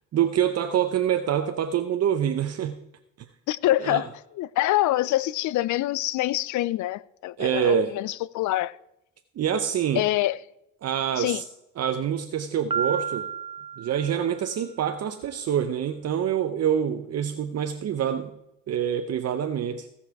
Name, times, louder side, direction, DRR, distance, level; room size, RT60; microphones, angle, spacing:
voice 1, 0.1-2.8 3.8-4.0 7.4-8.0 9.4-10.0 10.8-11.4 11.8-13.3 13.8-18.3 18.7-19.9, right 9 dB, 55° right, 0.7 m, -26 dB
voice 2, 3.5-4.1 4.3-8.7 9.9-10.4 11.2-11.4, left 15 dB, 70° left, 0.5 m, -25 dB
Piano, 12.7-14.6, right 6 dB, 20° right, 0.5 m, -32 dB
16.5 x 5.6 x 4.7 m
cardioid pair, 90°, 30 cm